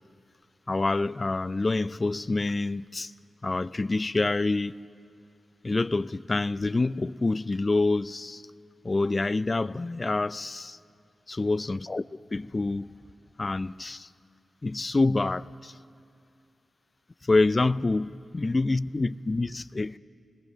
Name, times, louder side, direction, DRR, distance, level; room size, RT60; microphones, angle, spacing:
voice 1, 0.7-3.1 3.4-4.8 5.6-8.4 8.8-10.8 11.3-12.0 12.3-12.9 13.4-14.1 14.6-15.7 17.3-20.0, left 3 dB, 35° left, 0.4 m, -27 dB
20.0 x 20.0 x 6.5 m
cardioid pair, 65°, 0 cm